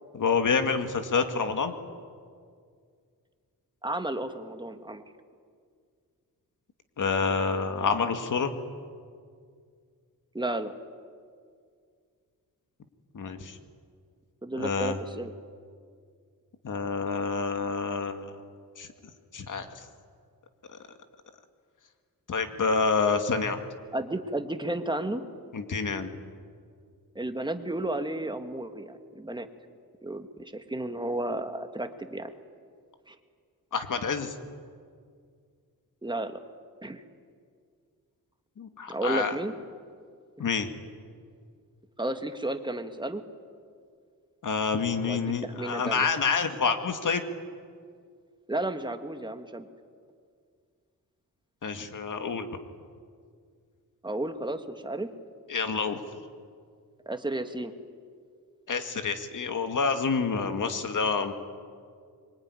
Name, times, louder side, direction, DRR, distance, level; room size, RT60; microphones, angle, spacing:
voice 1, 0.1-1.7 7.0-8.5 13.1-13.6 14.6-15.0 16.6-18.3 18.8-18.9 19.3-19.7 22.3-23.6 25.5-26.1 33.7-34.3 38.6-39.4 40.4-40.7 44.4-47.2 51.6-52.6 55.5-56.0 58.7-61.3, left 5 dB, 60° left, 7 dB, 2.2 m, -28 dB
voice 2, 3.8-5.0 10.3-10.7 14.4-15.3 23.9-25.2 27.2-29.5 30.0-32.3 33.1-33.2 36.0-36.4 36.8-37.0 38.9-39.5 42.0-43.2 45.1-46.1 48.5-49.7 54.0-55.1 57.1-57.7, right 1 dB, 15° right, 7 dB, 1.8 m, -32 dB
25.0 x 23.5 x 9.9 m, 2.1 s
wide cardioid pair, 105°, 36 cm